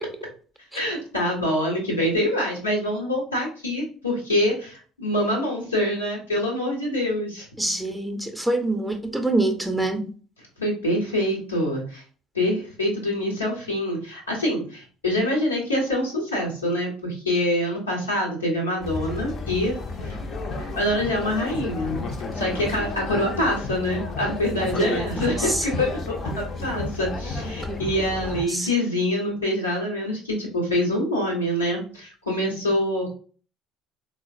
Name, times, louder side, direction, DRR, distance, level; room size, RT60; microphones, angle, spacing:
voice 1, 0.7-7.5 10.6-12.0 12.3-19.8 20.0-20.2 20.6-22.0 22.3-33.1, left 1 dB, 90° left, 0.9 m, -25 dB
voice 2, 7.6-10.1 24.6-25.1 25.5-25.6 27.5-28.7, right 2 dB, 5° right, 0.6 m, -26 dB
sound 1, 18.8-28.4, left 3 dB, 45° left, 0.5 m, -32 dB
3.7 x 2.0 x 2.5 m
figure-of-eight pair, 55°, 0 cm